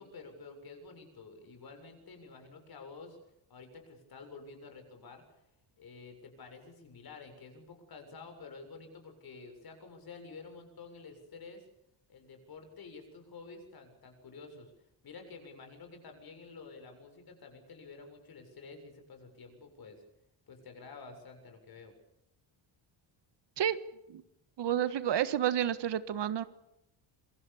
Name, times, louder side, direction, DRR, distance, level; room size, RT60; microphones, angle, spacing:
voice 1, 0.0-3.2 3.5-5.2 5.8-11.7 12.1-14.7 15.0-20.0 20.5-21.9, left 4 dB, 50° left, 6 dB, 7.4 m, -50 dB
voice 2, 24.6-26.4, right 10 dB, 60° right, 13 dB, 1.6 m, -30 dB
26.5 x 23.5 x 7.2 m, 0.82 s
cardioid pair, 135°, 48 cm